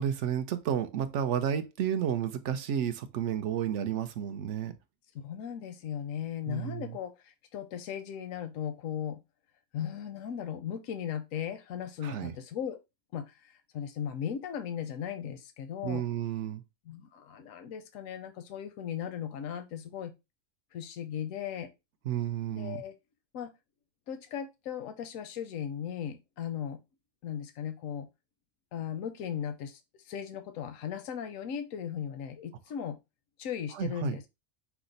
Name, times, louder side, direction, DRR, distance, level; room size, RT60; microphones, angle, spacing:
voice 1, 0.0-4.7 6.5-7.0 12.0-12.3 15.8-16.6 22.1-22.8 33.7-34.2, right 9 dB, 70° right, 0.9 m, -31 dB
voice 2, 5.2-9.2 9.7-12.8 13.1-16.0 16.9-20.1 20.7-21.7 22.5-22.9 23.3-23.5 24.1-26.8 27.2-28.1 28.7-29.8 30.0-33.0 33.4-34.3, left 9 dB, 80° left, 1.0 m, -37 dB
5.8 x 2.1 x 3.9 m
omnidirectional pair, 1.3 m